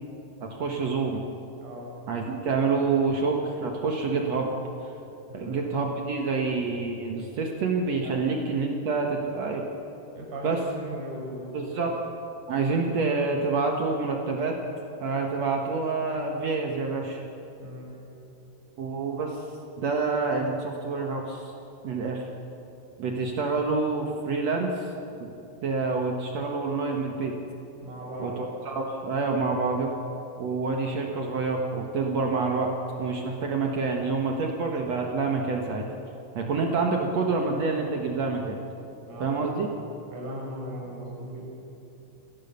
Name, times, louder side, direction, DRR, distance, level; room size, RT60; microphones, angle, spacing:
voice 1, 0.4-1.2 2.1-4.5 5.3-9.7 10.4-10.6 11.5-11.9 12.5-14.6 15.0-17.2 18.8-19.4 19.8-21.5 21.8-22.2 23.0-24.9 25.6-27.3 28.2-29.9 30.4-32.7 33.0-35.8 36.3-38.6 39.2-39.7, right 4 dB, 85° right, 1 dB, 1.4 m, -27 dB
voice 2, 1.6-1.9 5.3-5.6 8.0-8.2 10.2-11.9 12.5-12.7 17.6-17.9 27.8-28.4 39.0-39.4 40.1-41.5, equal, 40° right, -2 dB, 6.3 m, -38 dB
28.5 x 17.0 x 6.9 m, 2.9 s
omnidirectional pair, 5.5 m